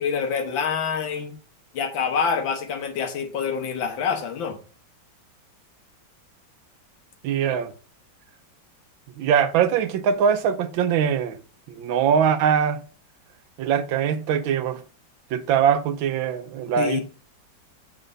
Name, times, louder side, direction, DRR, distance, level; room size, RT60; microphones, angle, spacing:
voice 1, 0.0-1.4 1.7-4.6 7.5-7.6 16.8-17.0, left 6 dB, 80° left, 1.9 m, -26 dB
voice 2, 7.2-7.7 9.2-11.4 11.8-12.8 13.6-14.8 15.3-17.0, right 8 dB, 85° right, 1.5 m, -22 dB
7.2 x 4.5 x 3.9 m
omnidirectional pair, 2.1 m